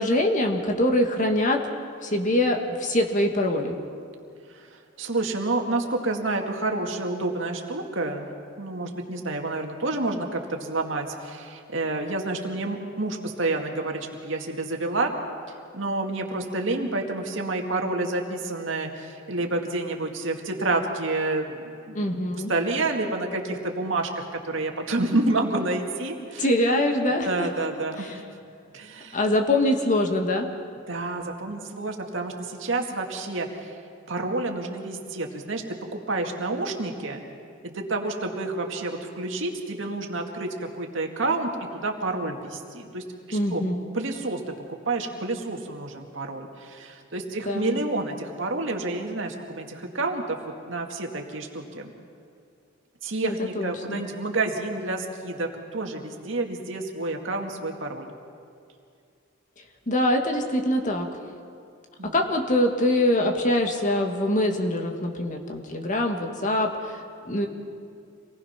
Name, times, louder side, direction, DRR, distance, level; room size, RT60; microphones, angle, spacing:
voice 1, 0.0-1.6 2.0-3.8 22.0-22.5 26.4-27.5 28.0-28.2 29.1-30.5 43.3-43.8 47.4-47.8 53.2-54.0 59.9-61.1 62.1-67.5, left 1 dB, 40° left, 3 dB, 1.8 m, -24 dB
voice 2, 5.0-8.3 8.6-15.1 15.7-22.1 22.5-26.5 27.2-28.1 28.7-29.2 30.9-33.8 34.1-35.6 35.9-37.2 37.6-43.6 43.9-44.4 44.7-50.4 50.7-51.9 53.0-58.1 62.0-62.2, right 2 dB, 70° right, 2 dB, 2.1 m, -29 dB
26.5 x 19.0 x 5.9 m, 2.4 s
head